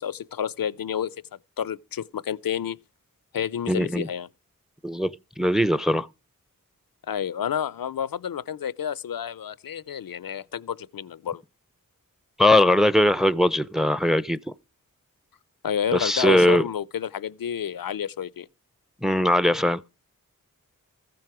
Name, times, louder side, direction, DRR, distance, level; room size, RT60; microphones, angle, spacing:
voice 1, 0.0-1.2 1.6-2.8 3.3-4.3 7.1-11.4 15.6-18.5, left 8 dB, 85° left, 0.5 m, -30 dB
voice 2, 3.7-4.1 4.8-6.1 12.4-14.4 15.9-16.6 19.0-19.8, left 1 dB, ahead, 0.5 m, -20 dB
15.0 x 7.7 x 4.8 m
wide cardioid pair, 65°, 34 cm